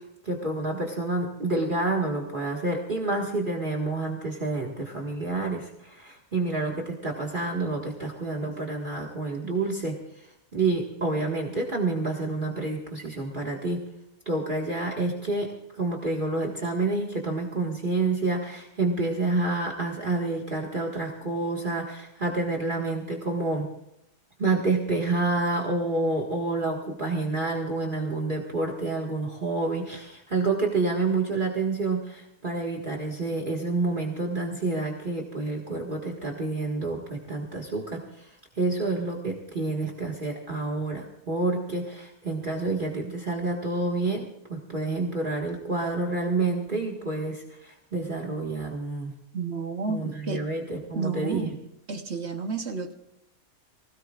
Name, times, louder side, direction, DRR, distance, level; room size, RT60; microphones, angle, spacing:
voice 1, 0.2-13.8 14.3-15.5 15.8-23.7 24.4-49.1 49.9-51.5, right 3 dB, 35° right, 0 dB, 2.0 m, -28 dB
voice 2, 49.3-50.5 50.9-51.6 51.9-52.9, right 4 dB, 50° right, 6 dB, 1.3 m, -31 dB
24.0 x 17.5 x 2.5 m, 0.83 s
omnidirectional pair, 1.5 m